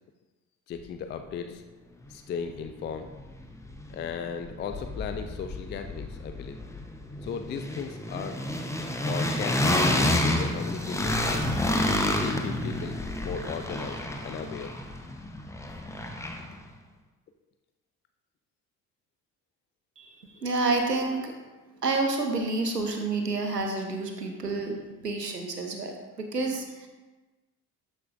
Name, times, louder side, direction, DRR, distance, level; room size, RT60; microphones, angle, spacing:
voice 1, 0.7-1.6 2.1-3.1 3.9-6.6 7.2-8.4 9.1-11.5 12.2-14.8 20.3-20.4, left 6 dB, 25° left, 7 dB, 0.4 m, -36 dB
sound 1, 2.6-2.7 3.0-4.2 4.4-16.6, left 1 dB, 5° left, 0.8 m, -29 dB
voice 2, 20.4-21.3 21.8-26.9, right 3 dB, 90° right, 3 dB, 0.8 m, -29 dB
12.0 x 5.3 x 2.5 m, 1.2 s
figure-of-eight pair, 55°, 46 cm